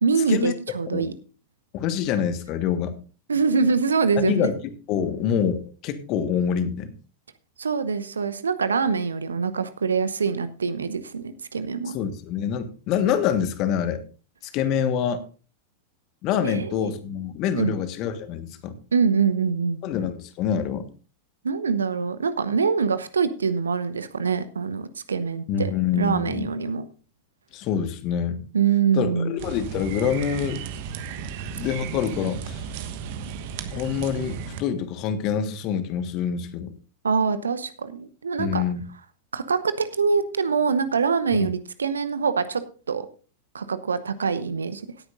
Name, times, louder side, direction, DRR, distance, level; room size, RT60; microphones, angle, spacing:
voice 1, 0.0-1.1 3.3-4.5 7.6-12.0 16.4-16.9 17.5-17.7 18.9-19.8 21.4-26.9 28.5-29.4 37.0-38.6 39.3-43.1 43.5-44.9, right 5 dB, 70° right, 13 dB, 0.9 m, -24 dB
voice 2, 1.7-3.0 4.1-4.6 4.9-6.9 11.9-14.0 14.5-15.2 16.2-18.8 19.8-20.9 25.5-26.5 27.5-28.4 28.9-30.6 31.5-32.6 33.7-36.7 38.4-38.8 41.3-41.5, left 8 dB, 40° left, 10 dB, 1.5 m, -26 dB
sound 1, 29.4-34.6, right 7 dB, 50° right, 1.2 m, -34 dB
17.5 x 9.6 x 2.6 m, 0.37 s
figure-of-eight pair, 90°, 0 cm